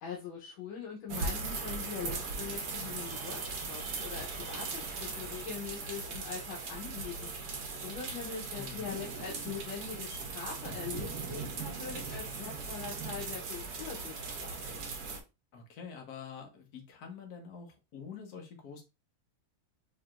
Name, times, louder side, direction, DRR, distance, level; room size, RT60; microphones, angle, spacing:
voice 1, 0.0-14.6, left 6 dB, 80° left, -2 dB, 1.7 m, -42 dB
sound 1, 1.1-15.2, right 4 dB, 60° right, 1.3 m, -39 dB
voice 2, 8.5-9.0 12.3-12.5 15.5-18.8, left 6 dB, 55° left, 3 dB, 1.4 m, -46 dB
4.8 x 2.9 x 2.4 m, 0.26 s
omnidirectional pair, 2.1 m